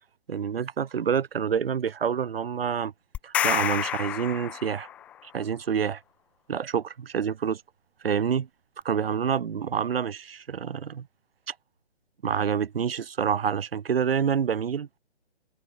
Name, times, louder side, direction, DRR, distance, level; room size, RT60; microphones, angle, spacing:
voice 1, 0.3-2.9 3.2-4.9 5.2-6.0 6.5-7.6 8.0-8.5 8.8-11.1 11.5-11.6 12.2-14.9, right 7 dB, 60° right, 1.6 m, -27 dB
sound 1, 3.1-5.1, left 10 dB, 5° left, 0.6 m, -29 dB
hypercardioid pair, 155°, 32 cm